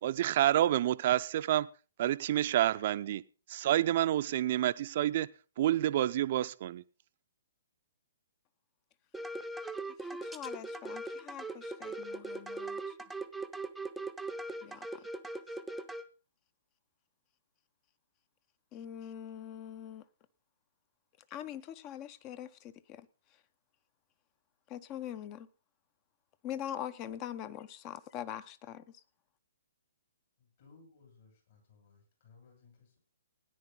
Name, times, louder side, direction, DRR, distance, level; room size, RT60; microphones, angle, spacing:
voice 1, 0.0-1.7 2.0-3.2 3.5-5.3 5.6-6.8, right 13 dB, 50° right, 0.6 m, -28 dB
sound 1, 9.1-16.0, right 2 dB, ahead, 0.8 m, -40 dB
voice 2, 10.0-13.0 14.6-15.1 18.7-20.1 21.3-23.1 24.7-25.5 26.4-28.8, left 10 dB, 30° left, 0.8 m, -43 dB
voice 3, 30.4-33.0, left 4 dB, 55° left, 7.6 m, -61 dB
17.5 x 9.9 x 3.9 m
figure-of-eight pair, 125°, 0 cm